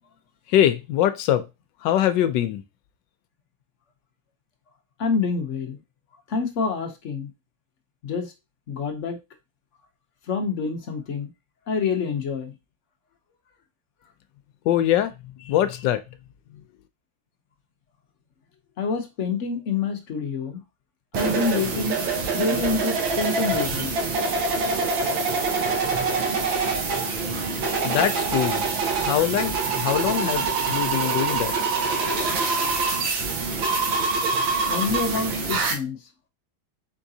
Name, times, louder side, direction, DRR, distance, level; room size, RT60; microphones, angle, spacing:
voice 1, 0.5-1.5 1.8-2.6 14.6-16.0 16.5-16.6 27.8-28.7 29.0-31.5, left 11 dB, 75° left, 1.2 m, -23 dB
voice 2, 5.0-5.8 6.3-7.3 8.0-8.3 8.7-9.2 10.3-11.3 11.7-12.5 18.8-20.6 21.1-22.0 22.3-23.9 34.7-36.0, left 4 dB, 60° left, 0.8 m, -27 dB
sound 1, 21.1-35.7, right 4 dB, 85° right, 1.8 m, -25 dB
4.7 x 3.7 x 2.7 m
omnidirectional pair, 2.1 m